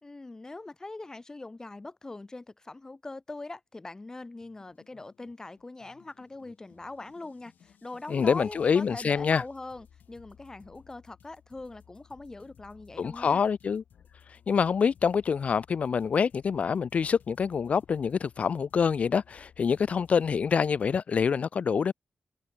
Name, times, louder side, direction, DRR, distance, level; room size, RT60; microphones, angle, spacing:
voice 1, 0.0-13.4, left 2 dB, 20° left, 1.0 m, -42 dB
sound 1, 4.4-21.0, left 8 dB, 85° left, 3.6 m, -58 dB
voice 2, 8.1-9.4 13.0-13.8 14.3-21.9, left 6 dB, 50° left, 0.3 m, -26 dB
wide cardioid pair, 115°, 3 cm